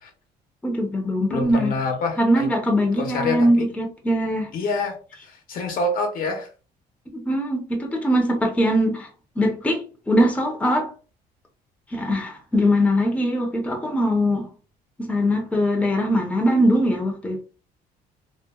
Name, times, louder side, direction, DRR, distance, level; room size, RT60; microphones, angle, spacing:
voice 1, 0.6-1.8 2.2-4.6 7.1-9.1 9.4-10.9 11.9-14.5 15.0-17.4, equal, 10° left, 0.6 m, -21 dB
voice 2, 1.3-2.5 3.0-3.7 4.5-6.5, left 3 dB, 55° left, 0.8 m, -27 dB
2.9 x 2.1 x 2.2 m
cardioid pair, 110°, 17 cm